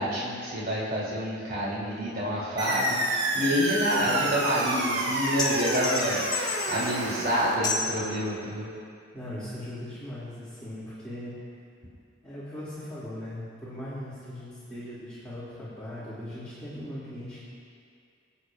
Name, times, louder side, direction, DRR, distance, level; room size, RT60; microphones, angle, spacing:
voice 1, 0.0-8.7, equal, 50° right, -7 dB, 3.0 m, -28 dB
sound 1, 2.6-7.6, right 1 dB, 75° right, 1.7 m, -29 dB
voice 2, 3.4-3.7 4.0-4.1 9.1-11.3 12.2-17.4, left 1 dB, 5° left, -13 dB, 2.6 m, -39 dB
sound 2, 5.4-7.0 7.6-8.0, left 4 dB, 20° left, 1.2 m, -31 dB
24.5 x 8.5 x 2.5 m, 2.3 s
head